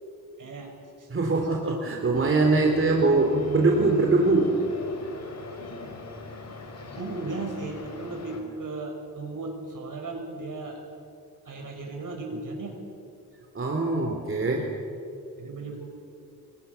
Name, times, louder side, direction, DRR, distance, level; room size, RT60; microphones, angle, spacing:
voice 1, 0.4-0.7 1.0-1.1 6.8-10.8 11.4-12.8 15.4-15.9, right 3 dB, 60° right, 2 dB, 6.2 m, -36 dB
voice 2, 1.1-4.6 13.5-14.7, right 3 dB, 35° right, 1 dB, 2.9 m, -22 dB
sound 1, 2.1-8.4, left 3 dB, 45° left, 4.4 m, -41 dB
30.0 x 23.0 x 6.9 m, 2.7 s
wide cardioid pair, 145°, 35 cm